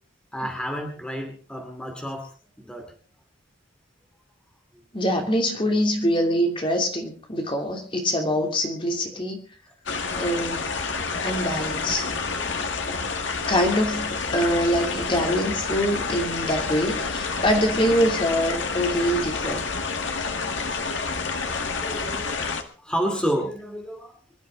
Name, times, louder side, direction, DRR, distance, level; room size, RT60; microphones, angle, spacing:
voice 1, 0.3-2.3 2.6-2.9 12.4-13.2 20.3-20.4 21.1-21.2 21.5-22.6 22.8-24.1, equal, 5° left, 3 dB, 2.5 m, -31 dB
voice 2, 4.9-9.4 10.1-10.6 11.2-12.0 13.5-19.7, equal, 25° left, 3 dB, 2.8 m, -24 dB
sound 1, 9.9-22.6, left 4 dB, 75° left, 1.9 m, -29 dB
24.5 x 12.0 x 3.8 m, 0.37 s
head